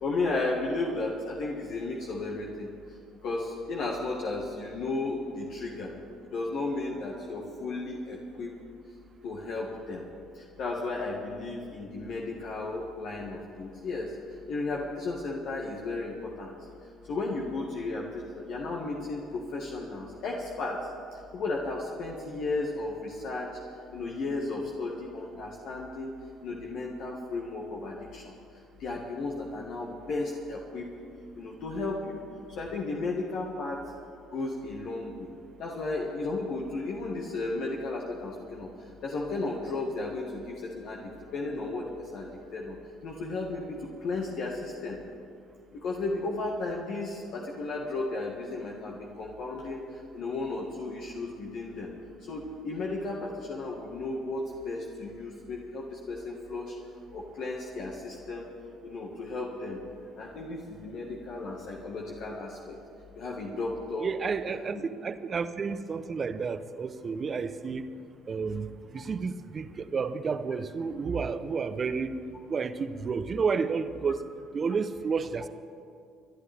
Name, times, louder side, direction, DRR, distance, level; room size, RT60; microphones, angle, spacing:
voice 1, 0.0-2.7 3.2-5.9 6.3-8.5 9.2-10.0 10.4-14.1 14.5-16.5 17.1-20.8 21.3-23.5 23.9-26.1 26.4-28.3 28.8-30.9 31.4-32.2 32.5-33.8 34.3-35.3 35.6-38.7 39.0-42.3 42.5-42.8 43.0-45.0 45.7-49.8 50.1-51.9 52.3-56.8 57.1-58.5 58.8-59.8 60.2-62.8 63.2-64.1 64.5-64.7, left 3 dB, 60° left, -1 dB, 1.7 m, -34 dB
voice 2, 64.0-67.9 68.3-68.7 68.9-72.2 72.5-74.2 74.5-75.5, right 5 dB, 40° right, 12 dB, 0.9 m, -31 dB
29.0 x 11.0 x 3.5 m, 2.4 s
hypercardioid pair, 55°, 0 cm